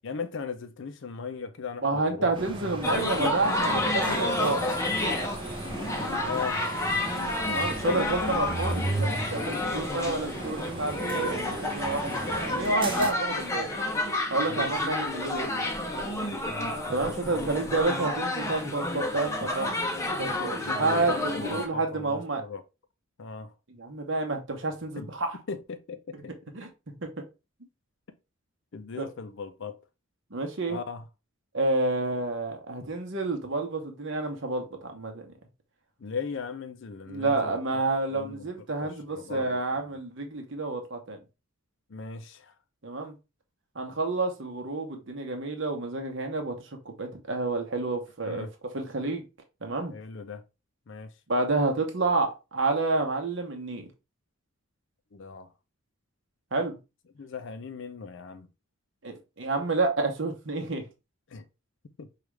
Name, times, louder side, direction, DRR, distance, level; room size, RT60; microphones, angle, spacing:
voice 1, 0.0-2.3 6.2-6.7 7.8-8.5 14.5-14.8 16.5-17.7 20.6-22.6 23.2-23.5 24.9-25.1 25.5-26.3 28.7-29.8 30.7-31.0 36.0-37.8 38.1-38.5 38.8-39.6 41.9-42.5 48.2-48.5 49.9-50.4 50.9-51.1 55.1-55.5 57.1-58.5 61.3-61.5 62.0-62.1, left 5 dB, 60° left, 0.5 m, -38 dB
voice 2, 1.8-4.7 7.5-13.7 14.3-15.7 16.9-19.8 20.2-22.4 23.8-25.4 26.5-27.1 29.0-29.1 30.3-30.8 31.5-35.3 37.1-41.2 42.8-43.1 43.7-46.6 46.8-48.5 48.7-49.2 49.6-49.9 51.3-53.9 56.5-56.8 59.0-60.9, right 3 dB, 60° right, 0.9 m, -29 dB
sound 1, 2.3-13.1, right 2 dB, 25° right, 0.7 m, -36 dB
sound 2, 2.8-21.7, left 2 dB, 15° left, 0.6 m, -30 dB
4.8 x 2.4 x 3.1 m
head